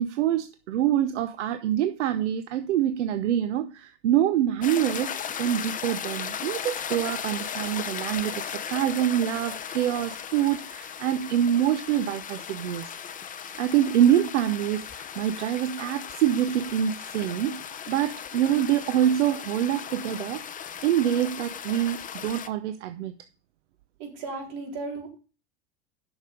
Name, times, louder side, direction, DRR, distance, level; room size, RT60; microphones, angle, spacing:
voice 1, 0.0-12.9 13.6-20.4 20.8-23.1, right 11 dB, 90° right, 0.7 m, -25 dB
sound 1, 4.6-22.5, left 8 dB, 25° left, 0.8 m, -37 dB
voice 2, 24.0-25.1, right 3 dB, 65° right, 4.0 m, -35 dB
8.7 x 6.3 x 5.1 m
supercardioid pair, 115°, 34 cm